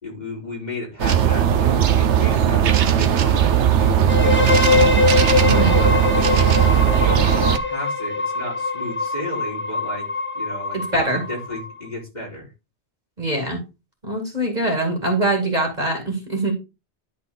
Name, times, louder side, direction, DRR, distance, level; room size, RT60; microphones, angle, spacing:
voice 1, 0.0-4.7 5.1-6.6 7.0-7.3 7.7-10.1 10.3-12.5, left 1 dB, 40° left, -2 dB, 3.6 m, -33 dB
sound 1, 1.0-7.6, right 9 dB, 85° right, 1.1 m, -17 dB
sound 2, 4.1-11.9, left 4 dB, 10° left, 0.9 m, -23 dB
voice 2, 5.4-5.7 10.7-11.2 13.2-13.6 14.0-16.5, right 2 dB, 40° right, 2 dB, 2.3 m, -23 dB
11.0 x 4.0 x 3.8 m, 0.26 s
omnidirectional pair, 1.1 m